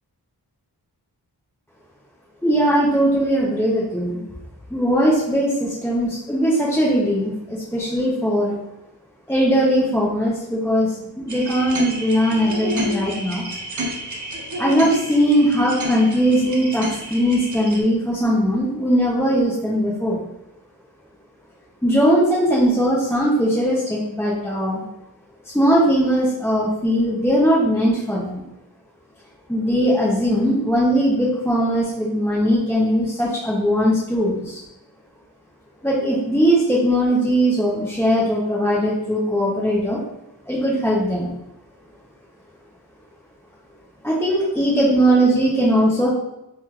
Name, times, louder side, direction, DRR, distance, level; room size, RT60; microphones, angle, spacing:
voice 1, 2.4-4.2 4.7-8.6 9.3-13.4 14.6-20.3 21.8-24.8 25.5-28.4 29.5-34.6 35.8-40.0 40.5-41.3 44.0-46.1, equal, 5° left, -7 dB, 0.6 m, -19 dB
sound 1, 11.3-17.8, right 1 dB, 45° right, 0.6 m, -30 dB
3.5 x 2.3 x 2.9 m, 0.90 s
wide cardioid pair, 65°, 40 cm